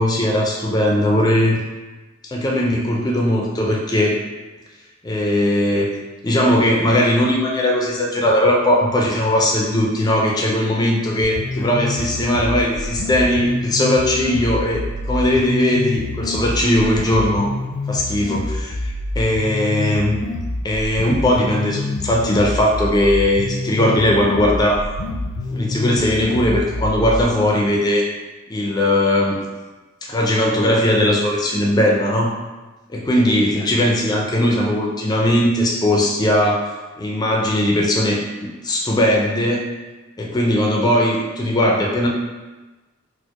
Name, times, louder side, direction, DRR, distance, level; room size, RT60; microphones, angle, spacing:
voice 1, 0.0-1.6 2.3-4.2 5.0-5.9 6.2-17.5 17.9-20.3 20.6-24.8 25.5-28.1 28.5-29.4 30.0-32.3 32.9-39.7 40.2-42.1, left 1 dB, 20° left, -1 dB, 0.4 m, -19 dB
sound 1, 11.2-27.2, left 2 dB, 90° left, 0.4 m, -27 dB
4.2 x 2.1 x 2.9 m, 1.2 s
head